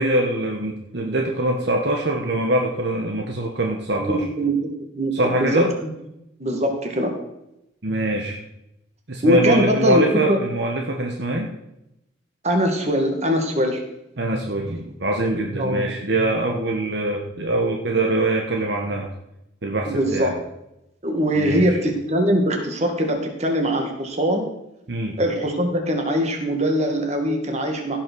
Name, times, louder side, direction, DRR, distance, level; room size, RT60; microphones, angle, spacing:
voice 1, 0.0-4.2 5.1-5.7 7.8-8.4 9.1-11.5 14.2-19.1 19.6-20.4 21.4-21.6 24.9-25.2, right 1 dB, 55° right, 1 dB, 1.2 m, -23 dB
voice 2, 4.0-4.6 4.9-5.9 6.4-7.1 9.2-10.0 10.3-10.4 12.4-13.8 15.6-15.8 19.9-20.3 21.0-24.5 25.2-28.0, equal, 35° right, 3 dB, 1.9 m, -22 dB
16.0 x 5.9 x 6.2 m, 0.87 s
head